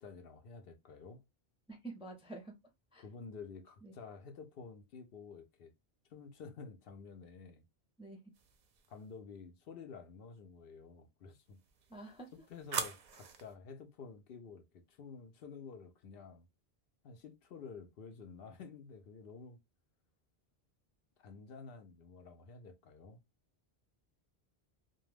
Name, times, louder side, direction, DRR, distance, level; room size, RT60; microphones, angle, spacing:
voice 1, 0.0-1.2 3.0-5.7 6.1-7.7 8.9-11.6 12.3-16.5 17.0-19.6 21.2-23.2, left 5 dB, 70° left, 0.7 m, -51 dB
voice 2, 1.7-2.5 2.9-3.0 3.8-3.9 8.0-8.2 11.9-12.3, right 2 dB, 10° right, 0.4 m, -48 dB
sound 1, 8.3-9.1 11.5-13.5, right 6 dB, 55° right, 0.6 m, -43 dB
2.2 x 2.2 x 3.2 m
omnidirectional pair, 1.0 m